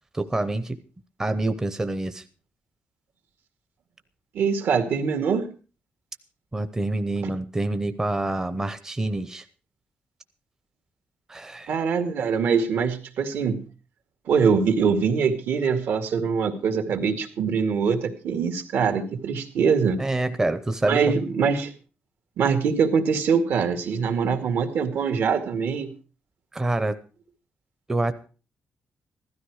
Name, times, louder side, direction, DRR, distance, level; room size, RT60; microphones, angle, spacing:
voice 1, 0.1-0.8 1.2-2.2 6.5-9.4 11.3-11.7 20.0-21.2 26.5-27.0 27.9-28.1, right 2 dB, 15° right, 10 dB, 0.7 m, -26 dB
voice 2, 4.3-5.5 11.7-13.6 14.3-20.0 20.8-21.7 22.4-25.9, right 6 dB, 70° right, 6 dB, 2.2 m, -23 dB
15.5 x 13.0 x 4.8 m, 0.35 s
wide cardioid pair, 180°, 4 cm